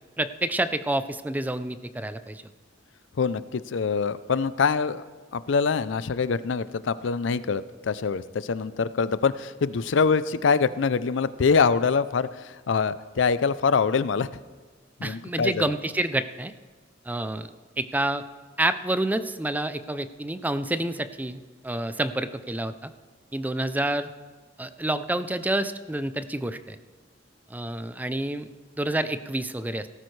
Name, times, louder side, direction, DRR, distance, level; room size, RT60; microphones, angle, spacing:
voice 1, 0.2-2.4 15.0-16.5 17.1-17.5 17.8-18.2 18.6-22.9 23.3-24.1 24.6-26.8 27.5-28.5 28.8-29.9, right 1 dB, 10° right, 11 dB, 0.4 m, -28 dB
voice 2, 3.2-5.0 5.3-14.3 15.0-15.7, left 5 dB, 70° left, 15 dB, 0.5 m, -24 dB
17.5 x 13.5 x 3.2 m, 1.3 s
head